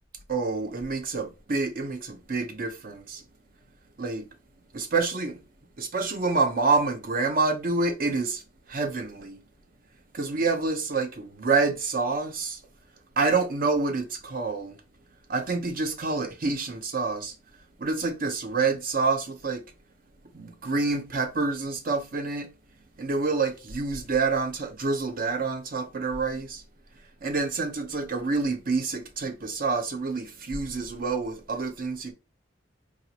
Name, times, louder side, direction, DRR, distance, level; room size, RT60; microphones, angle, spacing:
voice 1, 0.3-3.2 4.0-4.3 4.7-5.4 5.8-8.4 8.7-9.4 10.1-12.6 13.2-14.8 15.3-17.3 17.8-19.6 20.3-22.5 23.0-26.6 27.2-32.1, right 4 dB, 50° right, 0.7 m, -27 dB
5.0 x 2.5 x 2.8 m
head